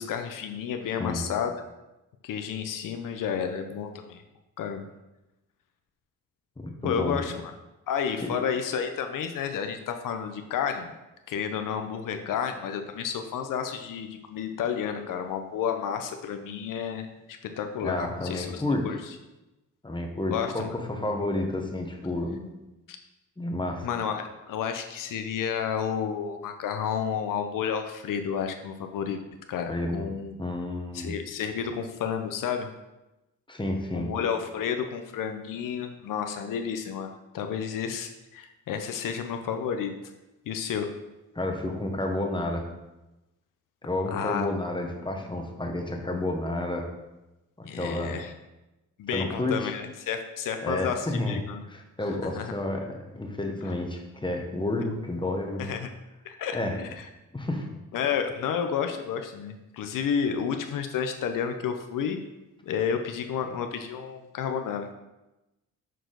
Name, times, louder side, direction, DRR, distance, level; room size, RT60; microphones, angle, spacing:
voice 1, 0.0-1.5 2.2-4.2 4.6-4.9 6.8-7.5 7.9-10.9 11.3-17.1 17.6-19.0 20.3-20.7 23.8-29.2 29.5-30.3 30.9-32.7 33.9-39.9 40.5-40.9 44.1-44.5 47.6-48.3 49.0-51.6 52.3-52.5 55.6-55.9 56.2-56.9 57.9-62.2 62.6-64.9, left 7 dB, 80° left, 6 dB, 0.6 m, -31 dB
voice 2, 6.6-7.2 8.2-8.3 17.8-19.0 19.8-22.5 23.4-23.9 29.7-30.1 30.4-31.2 33.5-34.1 41.3-42.6 43.8-46.9 47.6-48.2 49.1-49.7 50.6-51.4 51.7-52.9 53.1-55.7 56.5-56.8 57.3-57.7, left 1 dB, 15° left, 2 dB, 1.0 m, -30 dB
6.2 x 4.6 x 3.8 m, 1.0 s
cardioid pair, 85°, 32 cm